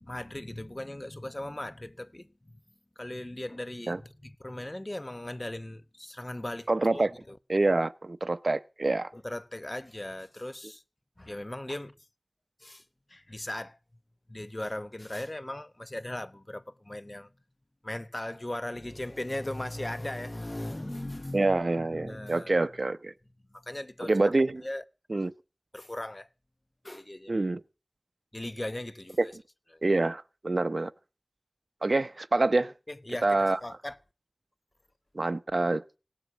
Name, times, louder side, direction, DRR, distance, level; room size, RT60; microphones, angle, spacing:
voice 1, 0.0-2.6 3.0-7.4 9.1-10.8 11.2-11.9 12.6-12.8 13.1-13.8 14.3-17.3 17.8-22.5 23.5-24.1 24.6-24.8 25.7-26.3 26.8-27.4 28.3-29.3 29.7-29.8 32.9-34.0, left 1 dB, 35° left, 0.9 m, -38 dB
voice 2, 6.7-7.1 7.5-9.1 21.3-23.1 24.0-24.6 25.1-25.3 27.3-27.6 29.2-29.3 29.8-30.9 31.8-32.7 33.2-33.6 35.1-35.8, right 2 dB, 75° right, 0.8 m, -26 dB
18.0 x 7.4 x 8.1 m
wide cardioid pair, 50°, 0 cm